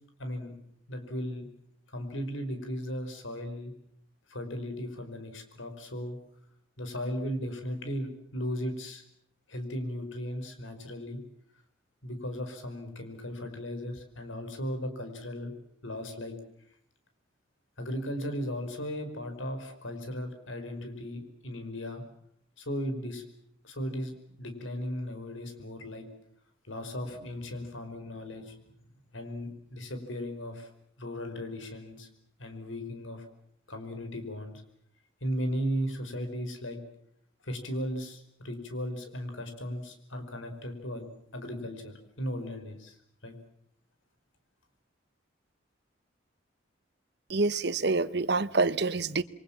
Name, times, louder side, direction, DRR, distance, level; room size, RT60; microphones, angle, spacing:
voice 1, 0.2-0.5 0.9-1.5 1.9-3.7 4.3-6.2 6.8-9.0 9.5-11.2 12.0-15.5 15.8-16.3 17.8-22.0 22.6-23.2 23.6-26.1 26.7-28.6 29.1-30.7 31.0-32.1 32.4-33.3 33.7-34.6 35.2-36.8 37.4-41.1 41.3-43.0 43.2-43.4, equal, 80° left, 5.2 m, -36 dB
voice 2, 47.3-49.2, right 3 dB, 55° right, 1.0 m, -27 dB
28.0 x 23.5 x 7.4 m
head